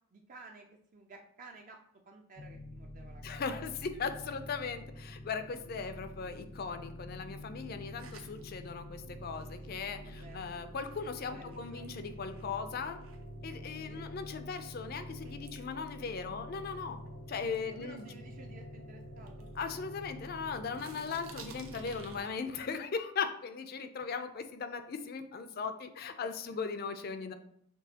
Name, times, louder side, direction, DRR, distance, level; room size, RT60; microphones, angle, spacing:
voice 1, 0.1-1.8 2.1-3.7 10.0-10.5 11.3-11.9 13.9-14.1 17.7-19.5 26.2-26.3, right 3 dB, 40° right, 2 dB, 0.4 m, -53 dB
sound 1, 2.4-22.2, left 1 dB, 70° left, 0.8 m, -47 dB
voice 2, 3.2-13.0 13.4-17.0 17.3-18.1 19.6-27.3, left 5 dB, 50° left, 9 dB, 0.4 m, -38 dB
sound 2, 8.0-12.6 12.9-17.1 17.5-18.7 19.2-20.4 20.7-22.7, right 6 dB, 80° right, 0.7 m, -57 dB
6.1 x 3.1 x 2.8 m, 0.69 s
head